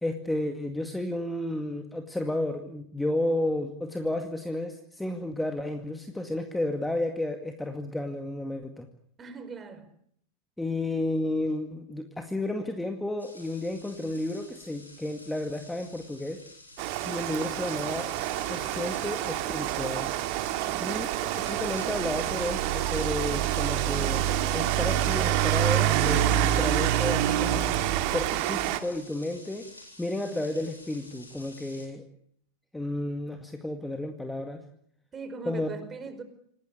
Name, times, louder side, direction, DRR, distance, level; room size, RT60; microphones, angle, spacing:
voice 1, 0.0-8.9 10.6-16.4 17.1-18.1 18.5-20.1 20.8-21.1 21.4-24.3 24.5-27.6 28.1-29.7 30.0-32.0 32.7-34.6 35.5-35.7, left 1 dB, 5° left, 6 dB, 2.1 m, -32 dB
voice 2, 9.2-9.9 35.1-36.2, right 5 dB, 20° right, 10 dB, 4.8 m, -40 dB
sound 1, 13.2-31.9, left 1 dB, 85° left, 7.9 m, -49 dB
Rain, 16.8-28.8, right 12 dB, 45° right, 2.2 m, -27 dB
27.5 x 19.0 x 8.5 m, 0.68 s
figure-of-eight pair, 90°, 0 cm